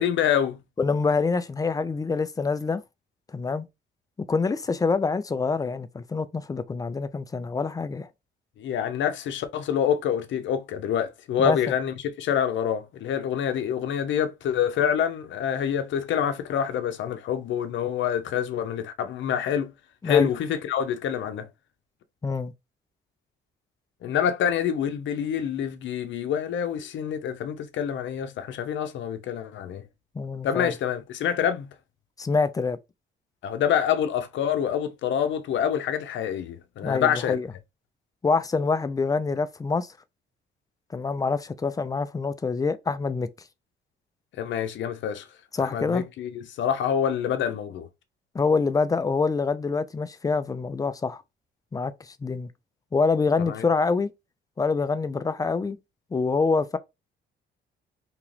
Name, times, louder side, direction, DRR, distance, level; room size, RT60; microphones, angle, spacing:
voice 1, 0.0-0.6 8.6-19.7 20.0-21.5 24.0-29.8 30.4-31.7 33.4-37.4 44.4-45.3 45.6-47.9 53.5-53.7, left 9 dB, 70° left, 0.6 m, -26 dB
voice 2, 0.8-2.8 3.3-3.7 4.3-8.1 11.4-11.7 20.0-20.3 22.2-22.5 30.1-30.7 32.2-32.8 36.8-37.5 38.2-39.9 40.9-43.3 45.5-46.0 48.3-51.2 51.7-52.5 52.9-54.1 54.6-55.8 56.1-56.8, left 4 dB, 20° left, 0.4 m, -26 dB
2.9 x 2.4 x 3.2 m
cardioid pair, 90°, 20 cm